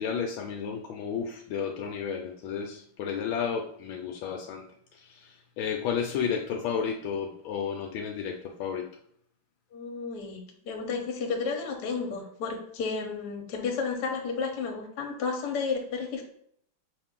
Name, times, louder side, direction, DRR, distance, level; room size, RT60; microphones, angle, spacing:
voice 1, 0.0-4.7 4.9-8.9, left 7 dB, 80° left, 3 dB, 1.3 m, -32 dB
voice 2, 9.7-16.2, left 5 dB, 60° left, 2 dB, 1.3 m, -32 dB
5.8 x 2.6 x 3.6 m, 0.67 s
omnidirectional pair, 2.2 m